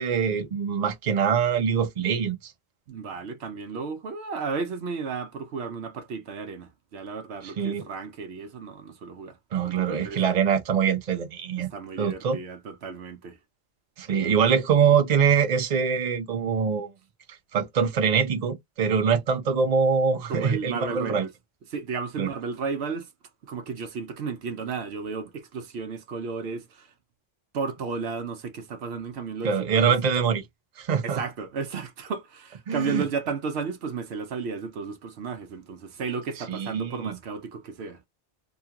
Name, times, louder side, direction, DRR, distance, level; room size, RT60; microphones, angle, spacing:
voice 1, 0.0-2.5 7.6-7.8 9.5-11.7 12.0-12.4 14.0-16.9 17.5-21.3 22.2-22.3 29.4-30.5 30.8-31.2 32.7-33.0 36.5-37.1, right 6 dB, 45° right, 0.7 m, -24 dB
voice 2, 2.9-9.4 9.6-10.2 11.7-13.4 20.3-21.3 21.7-23.1 23.4-26.9 27.5-29.9 31.0-38.0, right 5 dB, 75° right, 0.9 m, -33 dB
2.8 x 2.3 x 2.8 m
omnidirectional pair, 1.1 m